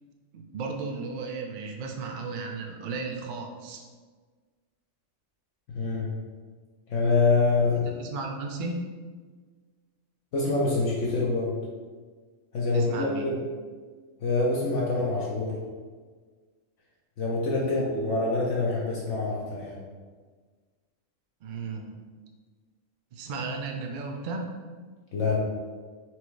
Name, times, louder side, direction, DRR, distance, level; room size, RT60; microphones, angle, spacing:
voice 1, 0.3-3.8 7.8-8.9 12.7-13.3 17.6-17.8 21.4-21.8 23.1-24.6, right 3 dB, 60° right, 2 dB, 0.5 m, -35 dB
voice 2, 5.7-6.1 6.9-7.9 10.3-11.5 12.5-13.4 14.2-15.6 17.2-19.8 25.1-25.4, left 3 dB, 65° left, -4 dB, 1.0 m, -25 dB
4.5 x 3.4 x 3.2 m, 1.5 s
omnidirectional pair, 1.4 m